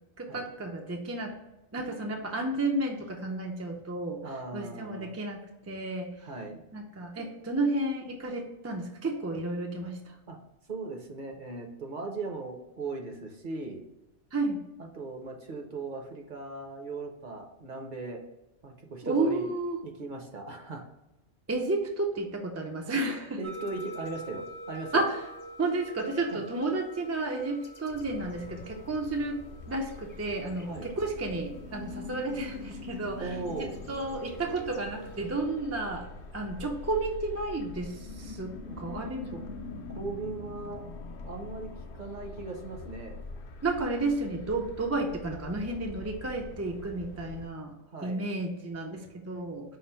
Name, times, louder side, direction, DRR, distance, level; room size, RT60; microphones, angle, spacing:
voice 1, 0.2-1.4 1.7-4.2 4.5-6.1 6.7-10.2 14.3-14.6 19.0-19.8 21.5-23.4 24.9-25.2 25.6-36.1 36.3-39.3 43.6-47.8 48.0-49.8, right 2 dB, 25° right, 2 dB, 0.3 m, -32 dB
voice 2, 4.2-5.1 6.2-6.6 10.3-10.4 10.7-13.8 14.8-18.2 18.6-19.5 19.8-20.9 23.4-25.0 26.3-26.4 30.6-30.9 33.2-33.8 38.6-38.8 39.3-39.4 39.9-40.8 41.2-43.2 47.9-48.2, right 3 dB, 50° right, 2 dB, 0.8 m, -38 dB
sound 1, 23.4-35.4, right 2 dB, 25° left, 0.5 m, -47 dB
sound 2, 27.9-47.5, left 3 dB, 60° left, 0.6 m, -44 dB
5.5 x 2.0 x 4.3 m, 0.96 s
omnidirectional pair, 1.2 m